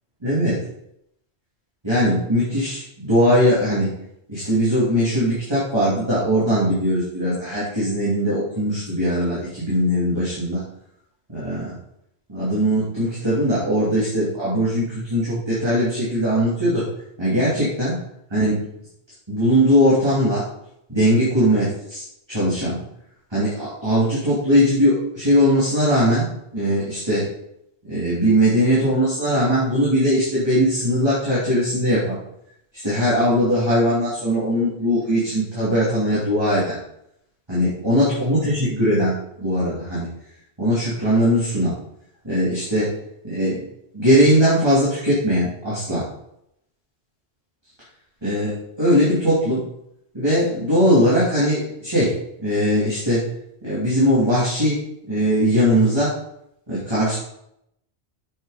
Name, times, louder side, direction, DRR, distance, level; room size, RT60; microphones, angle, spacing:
voice 1, 0.2-0.6 1.8-4.0 4.3-10.6 11.3-11.7 12.3-16.9 17.2-18.0 18.3-18.6 19.3-20.4 20.9-22.8 23.3-26.3 26.5-27.3 27.8-32.2 32.8-36.8 37.5-39.1 39.4-40.1 40.6-41.8 42.2-42.9 43.2-43.6 43.9-46.1 48.2-49.6 50.1-52.1 52.4-53.2 53.6-56.1 56.7-57.2, equal, 25° right, -10 dB, 3.0 m, -20 dB
7.2 x 6.7 x 5.1 m, 0.78 s
omnidirectional pair, 1.1 m